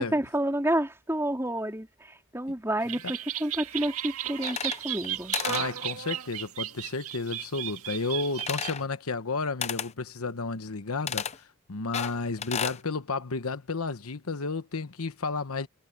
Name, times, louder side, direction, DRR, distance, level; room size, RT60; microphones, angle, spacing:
voice 1, 0.0-5.4, right 1 dB, 10° right, 4.0 m, -29 dB
sound 1, 2.8-8.7, right 11 dB, 85° right, 1.8 m, -35 dB
sound 2, 4.4-5.1 5.3-5.7 8.4-8.9 9.6-9.9 11.1-11.4 11.9-12.8, left 7 dB, 30° left, 0.6 m, -32 dB
voice 2, 5.5-15.7, left 3 dB, 80° left, 1.0 m, -32 dB
head